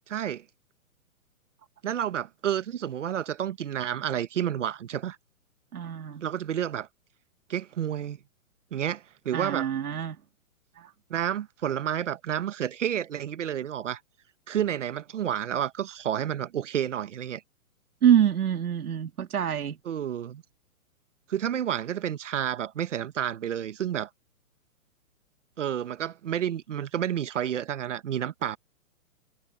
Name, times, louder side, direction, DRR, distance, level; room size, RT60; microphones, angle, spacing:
voice 1, 0.1-0.4 1.8-5.2 6.2-6.9 7.5-8.2 8.7-9.7 11.1-14.0 14.5-17.4 19.8-20.4 21.3-24.1 25.6-28.6, right 10 dB, 55° right, 1.4 m, -30 dB
voice 2, 5.7-6.2 9.3-10.2 10.8-10.9 18.0-19.8, right 9 dB, 85° right, 2.1 m, -25 dB
hypercardioid pair, 170°, 43 cm